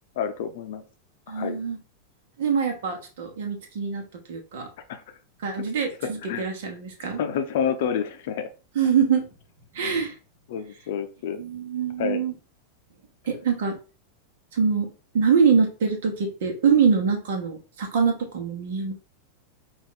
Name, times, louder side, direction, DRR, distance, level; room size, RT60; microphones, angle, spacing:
voice 1, 0.2-0.8 1.3-1.6 4.9-5.0 6.2-6.5 7.2-8.5 10.5-11.4 12.0-12.2, left 7 dB, 55° left, 8 dB, 0.6 m, -28 dB
voice 2, 1.3-1.8 2.4-4.7 5.4-7.2 8.7-9.3 9.7-10.1 11.4-12.3 13.3-13.8 14.5-18.9, right 6 dB, 55° right, 4 dB, 1.2 m, -24 dB
5.1 x 2.6 x 3.7 m, 0.34 s
figure-of-eight pair, 90°, 0 cm